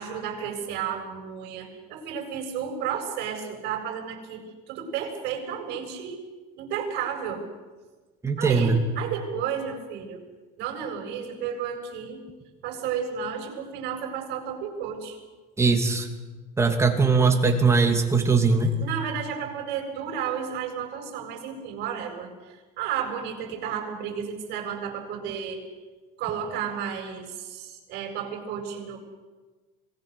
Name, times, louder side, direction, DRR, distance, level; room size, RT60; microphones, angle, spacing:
voice 1, 0.0-6.3 6.6-7.4 8.4-10.2 10.6-12.2 12.6-15.2 18.8-25.6 26.2-29.0, right 7 dB, 55° right, 2 dB, 7.2 m, -32 dB
voice 2, 8.2-8.8 15.6-16.1 16.6-18.7, right 4 dB, 15° right, 3 dB, 2.7 m, -20 dB
26.5 x 20.0 x 7.0 m, 1.3 s
cardioid pair, 140°, 20 cm